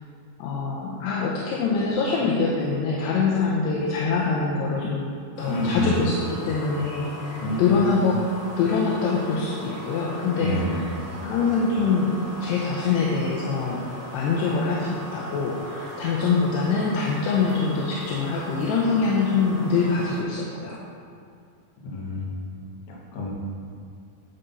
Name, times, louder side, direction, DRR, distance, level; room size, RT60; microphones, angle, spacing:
voice 1, 0.4-5.1 5.4-8.2 8.6-10.8 11.2-13.8 14.1-20.8, left 4 dB, 80° left, -3 dB, 2.9 m, -24 dB
sound 1, 5.3-20.2, equal, 20° right, 0.9 m, -39 dB
voice 2, 5.4-6.0 7.4-7.9 10.4-10.8 21.8-22.3 22.9-23.3, left 1 dB, 55° left, -3 dB, 2.2 m, -28 dB
9.5 x 7.9 x 4.0 m, 2.3 s
omnidirectional pair, 4.9 m